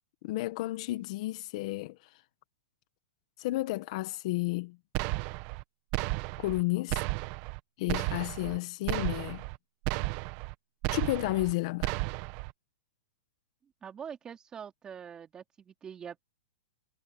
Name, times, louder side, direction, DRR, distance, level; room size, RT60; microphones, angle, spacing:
voice 1, 0.2-2.1 3.4-4.8 6.4-7.0 7.8-9.4 10.8-11.9, left 19 dB, 45° left, 1.6 m, -32 dB
sound 1, 4.9-5.6 5.9-6.6 6.9-7.6 7.9-8.6 8.9-9.6 9.8-10.5 10.8-11.5 11.8-12.5, right 22 dB, 35° right, 1.3 m, -33 dB
voice 2, 13.8-16.2, right 7 dB, 15° right, 3.4 m, -44 dB
hypercardioid pair, 155°, 5 cm